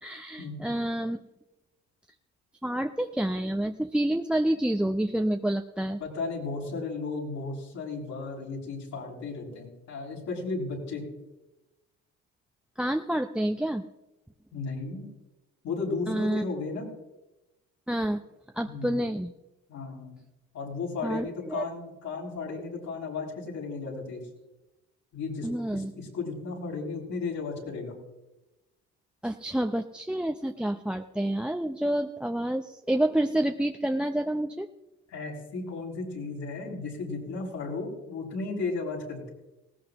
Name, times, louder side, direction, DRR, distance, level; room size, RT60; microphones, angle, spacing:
voice 1, 0.0-1.2 2.6-6.0 12.8-13.8 16.1-16.4 17.9-18.2 18.5-19.3 21.0-21.6 25.4-25.9 29.2-34.7, right 1 dB, 5° right, 6 dB, 0.6 m, -28 dB
voice 2, 6.0-11.0 14.5-15.1 15.6-16.9 18.7-19.0 19.7-20.1 20.5-24.2 25.1-27.9 35.1-39.3, left 3 dB, 70° left, -3 dB, 6.6 m, -34 dB
19.0 x 17.5 x 3.0 m, 0.99 s
cardioid pair, 85°, 29 cm